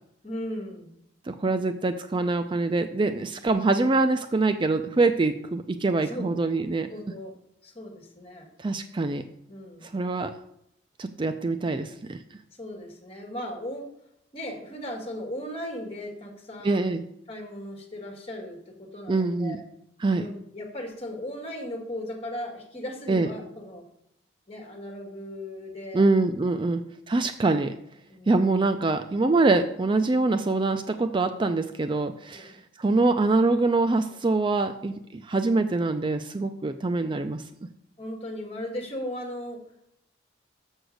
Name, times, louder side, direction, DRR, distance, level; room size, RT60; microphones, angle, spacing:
voice 1, 0.2-1.0 6.0-6.3 6.8-7.4 7.6-8.5 9.5-9.9 12.6-13.9 14.3-16.9 17.3-19.6 20.1-23.8 24.5-26.0 26.6-26.7 28.1-28.6 32.3-32.6 38.0-39.6, left 1 dB, 30° left, 1 dB, 1.9 m, -37 dB
voice 2, 1.3-6.9 8.6-9.2 9.8-10.3 11.0-12.2 16.6-17.0 19.1-19.6 20.0-20.2 23.1-23.3 25.9-27.7 28.3-32.5 32.8-37.4, right 3 dB, 25° right, 9 dB, 0.4 m, -24 dB
7.0 x 6.4 x 6.4 m, 0.77 s
head